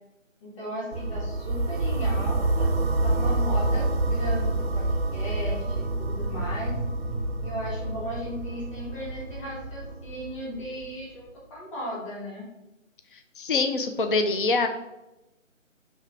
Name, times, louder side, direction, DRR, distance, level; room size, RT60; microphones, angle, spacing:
voice 1, 0.4-2.7 3.0-6.8 7.4-12.4, equal, 25° left, -7 dB, 1.9 m, -36 dB
sound 1, 0.9-10.9, right 2 dB, 50° right, 0.5 m, -27 dB
sound 2, 5.5-10.4, right 1 dB, 65° left, 1.3 m, -38 dB
voice 2, 13.4-14.7, left 3 dB, 40° left, 6 dB, 0.4 m, -24 dB
6.3 x 3.3 x 5.1 m, 0.96 s
figure-of-eight pair, 160°, 40 cm